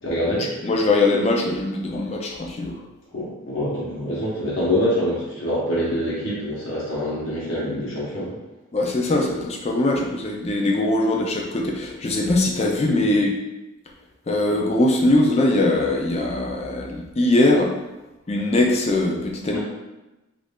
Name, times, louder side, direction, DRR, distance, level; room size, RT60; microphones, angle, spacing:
voice 1, 0.0-0.4 3.1-8.4 13.0-13.1 19.5-19.6, equal, 55° left, -7 dB, 0.9 m, -25 dB
voice 2, 0.6-2.7 8.7-13.3 14.3-17.7 18.3-19.6, left 2 dB, 30° left, 0 dB, 0.4 m, -21 dB
3.1 x 2.5 x 3.5 m, 1.1 s
head